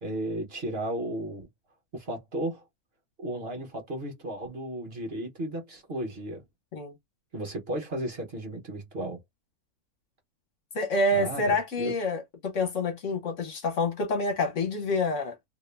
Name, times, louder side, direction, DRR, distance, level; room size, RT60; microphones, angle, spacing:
voice 1, 0.0-1.5 1.9-2.6 3.2-6.4 7.3-9.2 11.1-11.9, right 1 dB, 45° right, 1.2 m, -34 dB
voice 2, 10.7-15.5, left 2 dB, 60° left, 1.3 m, -27 dB
2.9 x 2.7 x 3.3 m
omnidirectional pair, 1.6 m